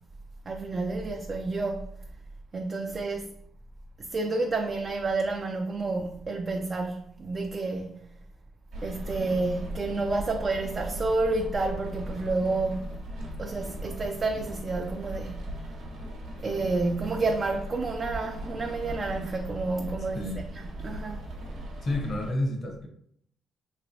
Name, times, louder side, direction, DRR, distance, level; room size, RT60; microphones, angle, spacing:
voice 1, 0.5-1.9 2.5-3.3 4.0-8.1 8.8-12.9 13.4-15.5 16.4-21.3, right 3 dB, 40° right, 0.3 m, -30 dB
Rain, 8.7-22.3, right 1 dB, 85° right, 0.9 m, -38 dB
voice 2, 21.8-22.9, left 1 dB, 45° left, 0.8 m, -30 dB
3.2 x 3.0 x 2.6 m
cardioid pair, 90°, 0 cm